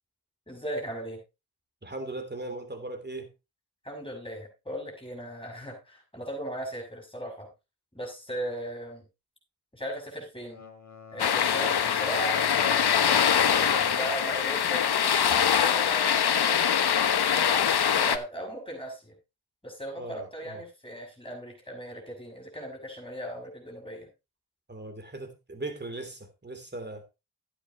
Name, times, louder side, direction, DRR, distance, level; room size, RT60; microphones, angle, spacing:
voice 1, 0.5-1.2 3.8-7.5 7.9-9.0 9.7-10.6 11.1-13.2 13.5-14.8 15.6-16.6 17.3-17.6 17.9-19.1 19.6-24.1, right 1 dB, 15° left, 5.9 m, -37 dB
voice 2, 1.8-3.3 20.0-20.6 24.7-27.0, right 2 dB, 25° right, 3.1 m, -38 dB
Wind instrument woodwind instrument, 10.4-14.2, left 4 dB, 45° left, 3.3 m, -42 dB
sound 1, 11.2-18.2, left 8 dB, 75° left, 1.0 m, -23 dB
13.0 x 10.0 x 3.0 m
cardioid pair, 65°, 39 cm